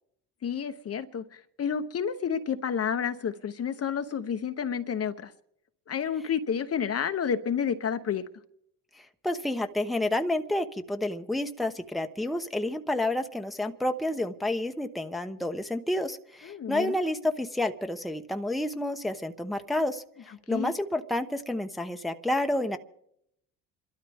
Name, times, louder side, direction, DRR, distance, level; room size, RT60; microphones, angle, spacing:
voice 1, 0.4-5.3 5.9-8.2 16.4-17.0 20.3-20.7, left 7 dB, 40° left, 9 dB, 0.9 m, -30 dB
voice 2, 9.2-20.0 20.5-22.8, left 1 dB, ahead, 6 dB, 0.9 m, -29 dB
27.5 x 12.5 x 3.5 m, 0.75 s
supercardioid pair, 75°, 38 cm